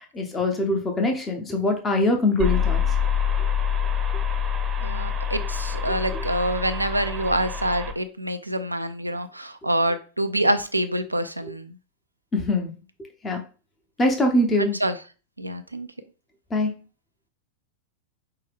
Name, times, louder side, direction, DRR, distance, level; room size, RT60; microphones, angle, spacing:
voice 1, 0.0-3.0 6.1-6.2 12.3-12.7 13.2-13.4 14.0-14.8 16.5-16.8, left 1 dB, 20° left, 3 dB, 0.7 m, -23 dB
sound 1, 2.4-7.9, left 7 dB, 20° right, 0.7 m, -26 dB
voice 2, 4.8-11.7 14.8-14.9 15.4-15.9, right 1 dB, 85° right, 9 dB, 0.4 m, -26 dB
5.4 x 2.3 x 3.5 m, 0.36 s
figure-of-eight pair, 90°, 0 cm